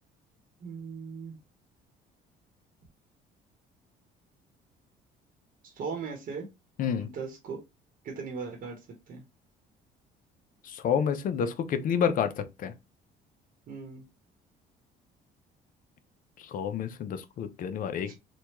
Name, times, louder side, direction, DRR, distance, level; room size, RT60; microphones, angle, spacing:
voice 1, 0.6-1.3 5.7-6.5 7.0-7.6 8.0-8.8 9.1-9.2 13.7-14.0 18.1-18.2, right 5 dB, 55° right, 1.0 m, -38 dB
voice 2, 6.8-7.1 10.6-12.7 16.4-18.1, left 7 dB, 55° left, 0.5 m, -29 dB
3.4 x 2.2 x 2.9 m
cardioid pair, 110°, 17 cm